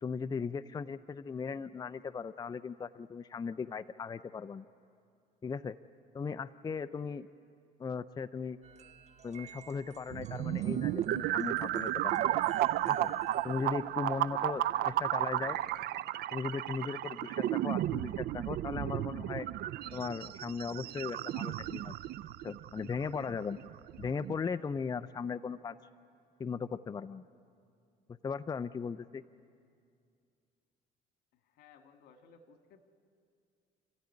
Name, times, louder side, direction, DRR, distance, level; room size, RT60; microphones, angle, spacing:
voice 1, 0.0-4.6 5.4-5.8 6.1-7.3 7.8-8.6 9.2-12.3 12.8-13.1 13.4-15.6 16.3-19.5 19.9-22.0 22.4-23.6 24.0-25.8 26.4-27.2 28.2-29.2, left 5 dB, 25° left, 13 dB, 0.5 m, -38 dB
sound 1, 8.6-15.8, right 7 dB, 40° right, 1.2 m, -53 dB
sound 2, 10.1-24.3, right 13 dB, 70° right, 0.5 m, -33 dB
voice 2, 31.4-32.8, left 5 dB, 80° left, 6 dB, 1.9 m, -59 dB
29.5 x 14.5 x 9.8 m, 2.4 s
cardioid pair, 110°, 17 cm